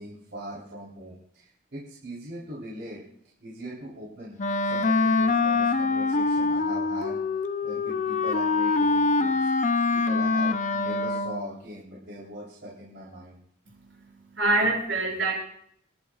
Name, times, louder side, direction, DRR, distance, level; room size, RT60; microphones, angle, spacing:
voice 1, 0.0-3.0 3.4-4.4 4.6-7.2 7.6-9.5 9.9-13.4, right 1 dB, 65° right, -6 dB, 3.6 m, -40 dB
Wind instrument woodwind instrument, 4.4-11.5, left 3 dB, 40° left, 0.6 m, -24 dB
voice 2, 13.7-15.3, right 2 dB, 80° right, -1 dB, 6.3 m, -26 dB
29.5 x 11.5 x 2.4 m, 0.68 s
head